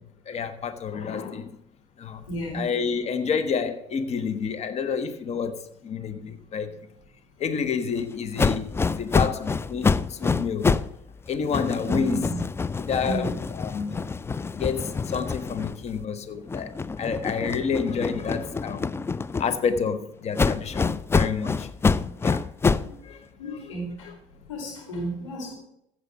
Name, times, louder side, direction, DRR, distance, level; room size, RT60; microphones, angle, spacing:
voice 1, 0.3-1.6 2.0-2.2 2.5-6.8 7.4-10.8 11.3-12.3 12.8-14.0 14.5-19.0 19.4-21.7 22.2-22.4 23.0-23.7 24.0-24.1, left 6 dB, 45° left, 1.1 m, -29 dB
voice 2, 2.3-2.6 11.8-12.4 13.0-13.2 21.9-22.0 22.8-22.9 23.4-24.1 24.5-25.5, right 1 dB, 85° left, 3.9 m, -33 dB
sound 1, 8.4-11.0 11.3-16.0 16.5-19.8 20.4-23.0, left 4 dB, 15° left, 0.4 m, -26 dB
15.0 x 5.1 x 5.4 m
hypercardioid pair, 60°, 16 cm